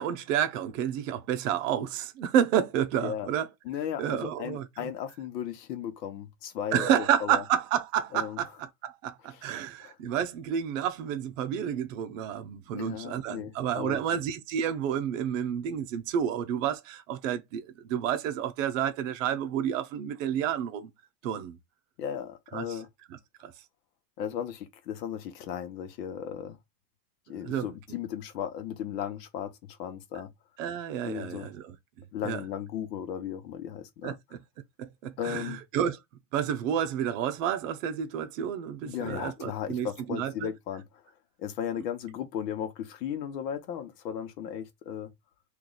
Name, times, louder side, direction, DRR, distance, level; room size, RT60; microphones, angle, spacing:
voice 1, 0.0-3.5 4.0-4.9 6.7-8.5 8.8-20.9 21.2-21.6 22.5-22.8 23.4-23.5 27.3-27.7 30.6-31.7 32.2-32.4 34.0-34.2 34.8-36.0 36.3-40.5, right 9 dB, 50° right, 0.7 m, -30 dB
voice 2, 3.6-7.4 8.1-8.4 9.3-9.4 9.8-10.0 12.7-14.0 22.0-22.9 24.2-26.6 27.3-30.3 31.0-31.5 32.1-34.2 35.2-35.6 38.8-40.8 41.4-45.1, left 9 dB, 85° left, 1.1 m, -36 dB
3.1 x 2.6 x 3.9 m
supercardioid pair, 175°, 49 cm